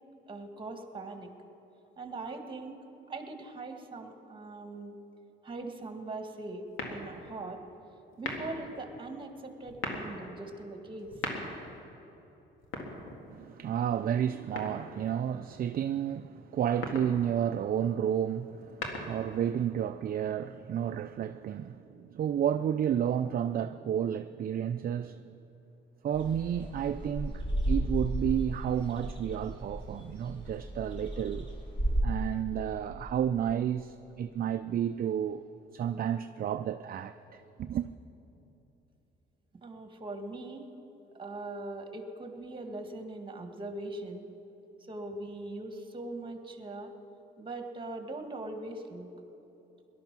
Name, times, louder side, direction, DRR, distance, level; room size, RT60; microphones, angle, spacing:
voice 1, 0.3-1.3 2.0-2.8 3.1-5.0 5.4-7.6 8.2-11.1 39.6-40.7 41.2-44.3 44.9-46.9 47.4-49.1, right 2 dB, 25° right, 1.8 m, -41 dB
sound 1, 6.7-7.4 8.1-8.7 9.6-10.1 11.0-11.8 12.6-13.5 14.6-15.2 16.6-17.2 18.5-19.4, left 2 dB, 90° left, 2.0 m, -38 dB
voice 2, 13.3-25.2 26.0-31.5 32.0-35.5 35.7-37.9, right 9 dB, 50° right, 0.4 m, -31 dB
sound 2, 26.1-32.0, right 1 dB, 25° left, 3.3 m, -34 dB
18.0 x 12.0 x 6.1 m
cardioid pair, 90°, 20 cm